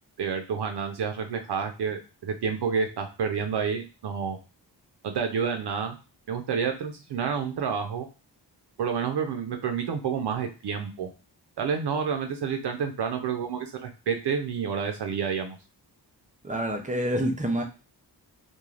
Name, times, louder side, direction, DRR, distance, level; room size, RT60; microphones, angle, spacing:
voice 1, 0.2-4.4 5.0-6.0 6.3-8.1 8.8-11.1 11.6-15.6, right 6 dB, 70° right, 5 dB, 0.5 m, -29 dB
voice 2, 16.4-17.6, right 1 dB, 20° right, 3 dB, 0.5 m, -27 dB
3.1 x 2.3 x 2.4 m, 0.31 s
wide cardioid pair, 120°, 42 cm